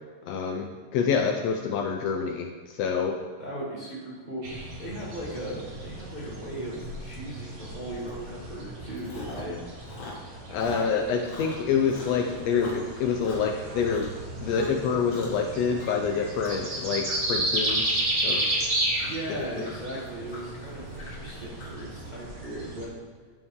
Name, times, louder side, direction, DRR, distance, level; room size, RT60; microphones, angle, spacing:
voice 1, 0.3-3.2 10.5-14.1 14.4-18.5 19.6-19.7, left 6 dB, 80° left, 3 dB, 1.5 m, -27 dB
voice 2, 3.4-9.6 19.0-23.0, right 1 dB, 30° right, -7 dB, 0.8 m, -37 dB
sound 1, 4.4-22.8, right 1 dB, 55° right, 1.0 m, -33 dB
Chewing mastication, 8.1-8.3 8.6-9.6 9.8-14.2 14.5-14.8 15.1-15.5 15.8-22.3, left 2 dB, 65° left, 2.9 m, -43 dB
13.0 x 4.5 x 3.6 m, 1.5 s
omnidirectional pair, 3.5 m